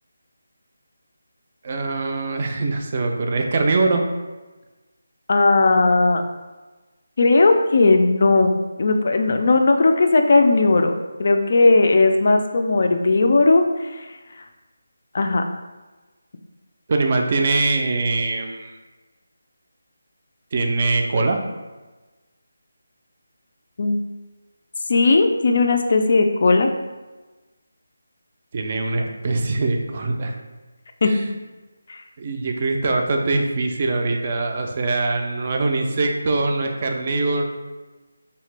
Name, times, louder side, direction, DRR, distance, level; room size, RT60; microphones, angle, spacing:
voice 1, 1.6-4.0 16.9-18.8 20.5-21.4 28.5-30.3 31.0-31.3 32.2-37.4, right 3 dB, 30° right, 3 dB, 0.4 m, -22 dB
voice 2, 5.3-6.2 7.2-8.5 8.8-14.1 15.1-15.4 23.8-24.0 24.9-26.7 31.0-31.1 31.9-32.0, left 3 dB, 45° left, 5 dB, 0.3 m, -17 dB
3.6 x 2.8 x 3.2 m, 1.2 s
figure-of-eight pair, 175°, 0 cm